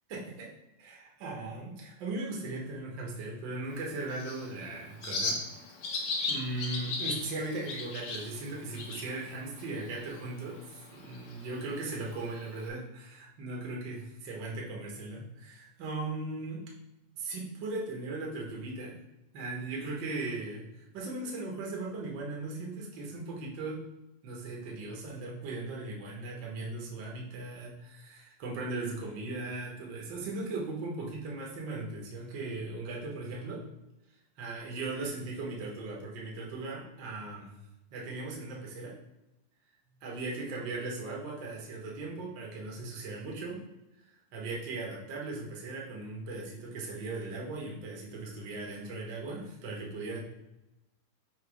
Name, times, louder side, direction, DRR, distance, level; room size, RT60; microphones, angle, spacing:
voice 1, 0.1-0.5 0.8-5.4 5.9-10.6 10.9-16.6 17.1-18.9 19.3-23.8 24.2-33.6 34.4-37.5 37.9-38.9 40.0-43.6 44.3-50.2, right 2 dB, 85° right, -2 dB, 1.0 m, -38 dB
Bird, 3.7-12.7, left 3 dB, 90° left, 1.3 m, -38 dB
7.0 x 3.0 x 4.8 m, 0.92 s
omnidirectional pair, 4.3 m